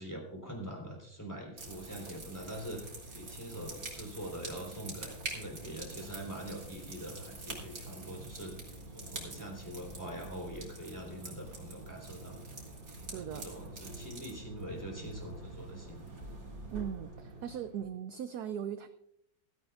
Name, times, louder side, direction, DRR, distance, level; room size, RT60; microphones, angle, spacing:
voice 1, 0.0-12.4 13.0-16.3, right 1 dB, 10° left, -1 dB, 3.5 m, -44 dB
sound 1, 1.6-17.8, right 2 dB, 45° right, 3.1 m, -45 dB
voice 2, 13.1-13.5 16.7-18.9, right 9 dB, 70° right, 10 dB, 1.0 m, -39 dB
16.0 x 14.0 x 2.4 m, 0.74 s
omnidirectional pair, 2.1 m